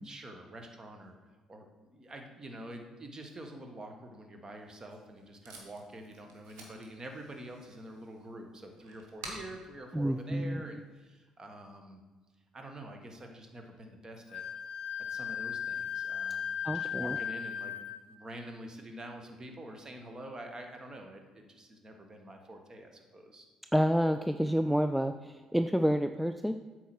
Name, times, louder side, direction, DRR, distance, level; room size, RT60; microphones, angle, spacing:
voice 1, 0.0-1.1 1.5-12.0 12.5-14.4 15.1-17.7 18.1-23.5, right 1 dB, 30° right, 4 dB, 1.5 m, -47 dB
Packing tape duct tape, 4.5-11.0, right 2 dB, 80° right, 1.2 m, -52 dB
voice 2, 9.9-10.6 16.6-17.2 23.7-26.6, equal, ahead, 8 dB, 0.3 m, -29 dB
Wind instrument woodwind instrument, 14.3-18.0, left 8 dB, 60° left, 0.6 m, -36 dB
8.0 x 4.7 x 6.2 m, 1.3 s
figure-of-eight pair, 50°, 2 cm